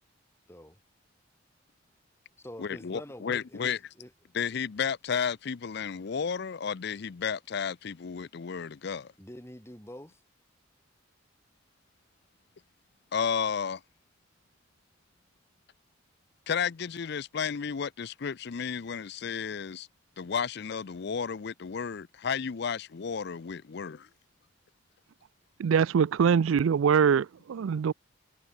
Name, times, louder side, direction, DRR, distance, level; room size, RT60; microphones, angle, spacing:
voice 1, 0.5-0.8 2.4-4.1 9.2-10.2, equal, 15° left, 3.8 m, -46 dB
voice 2, 2.6-3.8 4.3-9.1 13.1-13.8 16.5-19.9 20.2-24.1, left 6 dB, 55° left, 0.5 m, -32 dB
voice 3, 25.6-27.9, right 7 dB, 80° right, 0.4 m, -23 dB
head